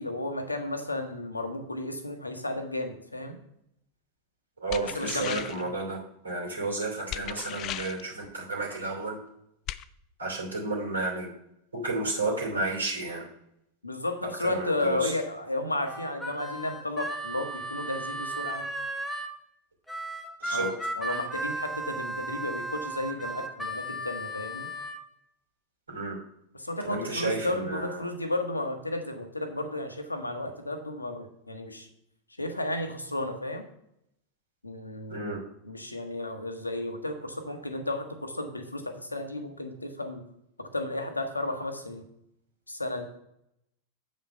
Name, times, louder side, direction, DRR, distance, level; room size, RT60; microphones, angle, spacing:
voice 1, 0.0-3.4 4.9-5.7 13.8-18.7 20.5-24.7 26.5-31.9 32.4-33.7 34.6-35.4 35.6-40.2 40.6-42.0 42.7-43.0, left 2 dB, 85° left, 6 dB, 1.0 m, -33 dB
voice 2, 4.6-6.0 6.2-9.2 10.2-11.3 11.7-13.3 14.4-15.1 20.4-20.7 25.9-26.2 26.8-28.1 35.1-35.4, right 2 dB, 75° right, 0 dB, 2.7 m, -32 dB
sound 1, 4.7-5.7 7.1-8.1 9.7-9.8, left 12 dB, 35° left, 0.3 m, -37 dB
Harmonica, 15.8-19.3 19.9-25.0, right 2 dB, ahead, 1.0 m, -35 dB
7.9 x 5.2 x 5.3 m, 0.77 s
figure-of-eight pair, 90°, 0 cm